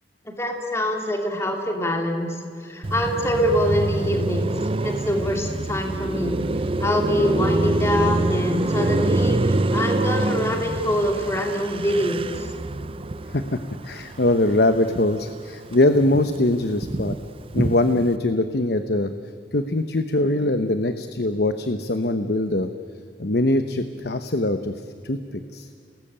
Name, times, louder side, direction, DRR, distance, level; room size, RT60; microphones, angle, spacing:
voice 1, 0.4-4.5 4.8-6.4 6.8-12.5, equal, 15° left, 2 dB, 2.8 m, -24 dB
Car passing by, 2.8-15.3 15.6-18.1, right 2 dB, 30° right, 0.6 m, -26 dB
voice 2, 13.8-17.2 17.5-19.1 19.5-22.7 23.2-24.7 25.0-25.2 25.5-25.7, left 1 dB, 60° left, 9 dB, 1.0 m, -22 dB
29.5 x 19.5 x 8.8 m, 2.5 s
head